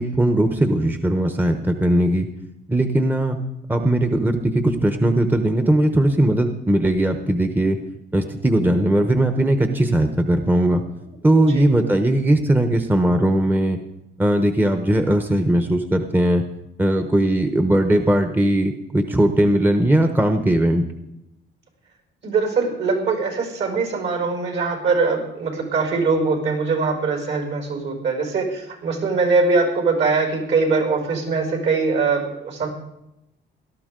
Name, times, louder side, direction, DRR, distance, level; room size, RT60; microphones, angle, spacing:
voice 1, 0.0-2.3 2.7-3.4 3.7-7.8 8.1-10.8 11.2-13.8 14.2-16.4 16.8-20.8, right 1 dB, 10° right, 6 dB, 0.9 m, -19 dB
voice 2, 11.3-11.6 22.2-32.7, right 4 dB, 65° right, 2 dB, 5.6 m, -22 dB
17.5 x 13.0 x 3.8 m, 0.87 s
cardioid pair, 90°, 20 cm